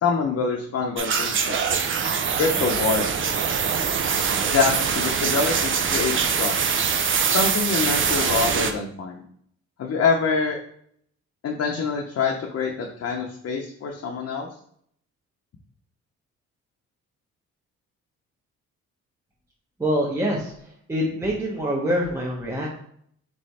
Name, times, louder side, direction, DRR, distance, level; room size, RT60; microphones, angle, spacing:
voice 1, 0.0-1.6 2.4-3.1 4.4-6.6 7.3-9.2 9.8-10.6 11.4-14.5, left 5 dB, 55° left, 1 dB, 0.8 m, -25 dB
sound 1, 1.0-8.7, right 6 dB, 45° right, 0.6 m, -23 dB
voice 2, 19.8-20.5 20.9-22.7, equal, 10° right, -4 dB, 0.9 m, -25 dB
3.5 x 3.2 x 4.1 m, 0.66 s
cardioid pair, 90°, 30 cm